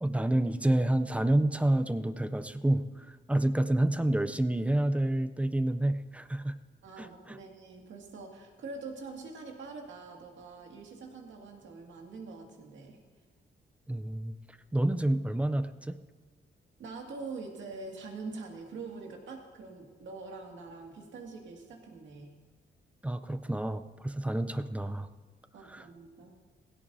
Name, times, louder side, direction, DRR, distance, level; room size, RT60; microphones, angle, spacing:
voice 1, 0.0-6.6 7.0-7.4 13.9-14.4 14.7-16.0 23.0-25.1 25.7-25.9, right 1 dB, 5° right, 11 dB, 0.5 m, -29 dB
voice 2, 6.8-13.0 16.8-22.4 25.5-26.3, right 3 dB, 75° right, 1 dB, 2.2 m, -44 dB
17.0 x 17.0 x 2.7 m, 1.4 s
wide cardioid pair, 150°, 20 cm